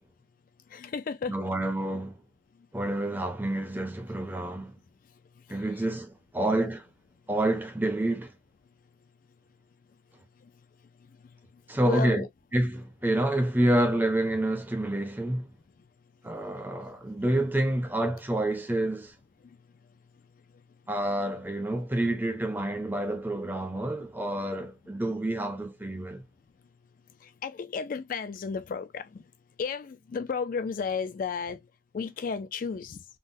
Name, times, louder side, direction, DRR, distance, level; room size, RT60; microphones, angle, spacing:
voice 1, 0.7-1.4 2.6-2.7 5.0-5.6 6.4-6.6 10.4-10.5 11.0-11.6 11.9-12.3 16.4-16.8 19.4-19.6 20.5-20.6 27.2-29.3 29.6-31.6 31.9-33.1, left 5 dB, 50° left, 0.3 m, -34 dB
voice 2, 1.3-2.2 2.7-4.7 5.5-6.8 7.3-8.3 11.7-12.2 12.5-15.5 16.2-19.1 20.9-26.2, right 1 dB, 10° right, 0.6 m, -28 dB
3.7 x 2.1 x 2.5 m
head